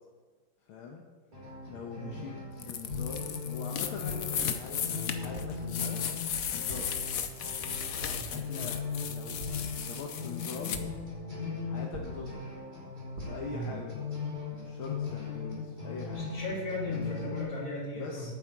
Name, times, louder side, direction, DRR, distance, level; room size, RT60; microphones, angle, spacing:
voice 1, 0.6-1.1 1.7-6.0 6.5-6.9 8.2-8.8 9.1-9.4 9.8-10.8 11.6-12.5 13.2-14.1 14.5-16.3 16.9-17.3 18.0-18.3, left 5 dB, 75° left, 0 dB, 1.9 m, -42 dB
sound 1, 1.3-17.4, left 5 dB, 20° right, 3.2 m, -38 dB
voice 2, 1.9-2.2 8.1-8.7 13.5-13.8 16.1-18.3, equal, 45° left, -6 dB, 3.8 m, -38 dB
sound 2, 2.6-10.8, left 8 dB, 60° left, 0.9 m, -36 dB
sound 3, 2.9-3.4 4.1-4.5 5.3-5.7 6.7-7.1 8.0-8.4 9.4-9.9 10.7-11.2 11.9-12.5 13.1-13.6, equal, 65° right, 2.7 m, -43 dB
8.8 x 8.4 x 7.9 m, 1.4 s
omnidirectional pair, 2.3 m